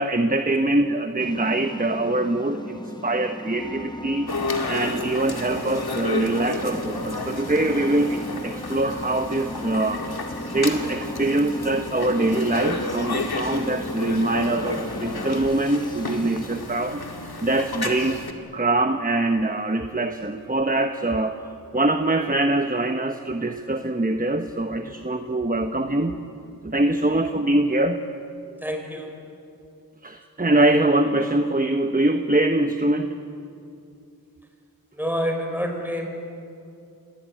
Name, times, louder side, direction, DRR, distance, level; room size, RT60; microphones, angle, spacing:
voice 1, 0.0-4.3 4.7-10.1 10.5-17.0 17.4-18.2 18.5-21.4 21.7-26.2 26.6-28.0 30.0-33.2, right 2 dB, 25° right, 7 dB, 1.1 m, -23 dB
sound 1, 1.2-16.9, left 1 dB, 10° left, 1.3 m, -36 dB
sound 2, 4.3-18.3, left 3 dB, 85° left, 2.1 m, -32 dB
voice 2, 28.6-29.2 34.9-36.1, equal, 5° right, 3 dB, 5.3 m, -28 dB
28.0 x 21.0 x 9.1 m, 2.6 s
wide cardioid pair, 55°, 37 cm